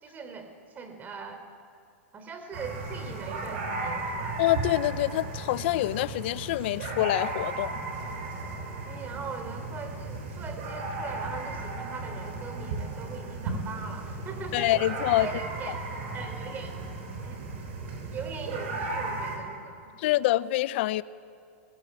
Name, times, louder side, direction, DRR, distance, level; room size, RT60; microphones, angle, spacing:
voice 1, 0.0-1.4 2.1-4.4 8.8-14.8 15.2-15.8 16.1-16.7 17.2-17.4 18.1-19.9, right 5 dB, 25° right, 7 dB, 3.9 m, -40 dB
sound 1, 2.5-19.4, right 3 dB, 60° right, 7.2 m, -35 dB
voice 2, 4.4-7.7 14.5-15.3 20.0-21.0, left 16 dB, 60° left, 17 dB, 0.8 m, -26 dB
25.0 x 22.0 x 9.0 m, 2.3 s
hypercardioid pair, 125°, 7 cm